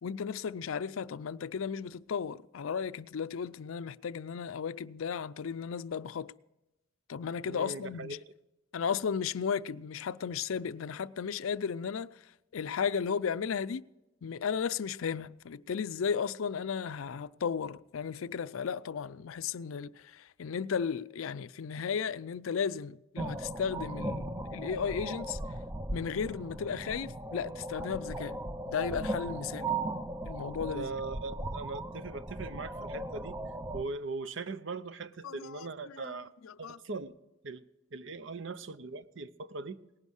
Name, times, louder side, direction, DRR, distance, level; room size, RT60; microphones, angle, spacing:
voice 1, 0.0-6.3 7.1-8.2 8.7-12.3 12.5-13.9 14.2-25.4 25.9-28.4 28.7-29.7 30.2-30.9 35.2-36.2 36.4-36.8, left 6 dB, 80° left, 0.4 m, -35 dB
voice 2, 7.5-8.2 30.7-33.4 33.7-36.3 36.6-37.1 37.4-39.8, right 3 dB, 65° right, 0.7 m, -40 dB
sound 1, 23.2-33.8, right 2 dB, 15° right, 0.4 m, -38 dB
18.5 x 11.0 x 6.4 m
head